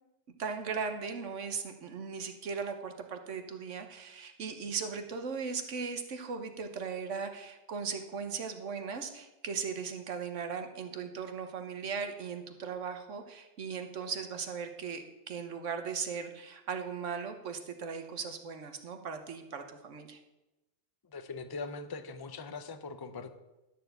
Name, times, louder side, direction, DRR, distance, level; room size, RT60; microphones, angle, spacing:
voice 1, 0.4-20.2, right 5 dB, 85° right, 6 dB, 1.4 m, -38 dB
voice 2, 21.1-23.3, left 4 dB, 25° left, 9 dB, 0.5 m, -41 dB
12.0 x 4.7 x 7.7 m, 1.0 s
omnidirectional pair, 1.2 m